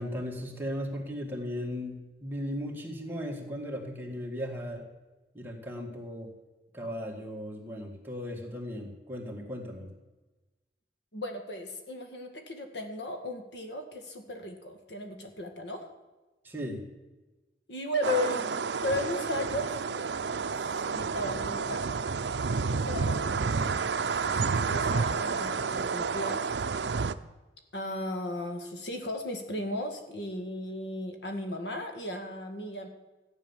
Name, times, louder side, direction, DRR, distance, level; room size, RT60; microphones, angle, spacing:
voice 1, 0.0-4.9 5.3-6.3 6.7-9.9 16.4-16.8, equal, 10° right, -1 dB, 2.3 m, -37 dB
voice 2, 11.1-15.9 17.7-21.9 22.6-23.8 24.2-26.6 27.7-32.9, left 1 dB, 80° left, 5 dB, 1.9 m, -36 dB
sound 1, 18.0-27.1, right 5 dB, 75° right, 0.6 m, -30 dB
14.0 x 9.5 x 7.3 m, 1.2 s
head